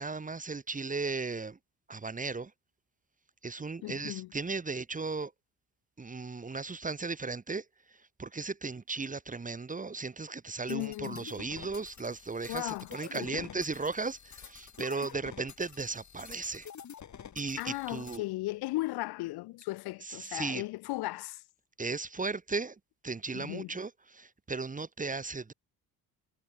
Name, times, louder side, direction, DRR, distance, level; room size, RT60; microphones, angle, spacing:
voice 1, 0.0-1.6 1.9-2.5 3.4-5.3 6.0-16.7 17.4-18.2 20.0-20.6 21.8-25.5, right 4 dB, 20° right, 1.6 m, -36 dB
voice 2, 3.8-4.3 10.7-11.2 12.5-13.5 14.9-15.1 17.6-21.4 23.3-23.7, left 19 dB, 80° left, 6.8 m, -36 dB
sound 1, 10.7-18.2, left 8 dB, 50° left, 6.1 m, -49 dB
supercardioid pair, 85°, 37 cm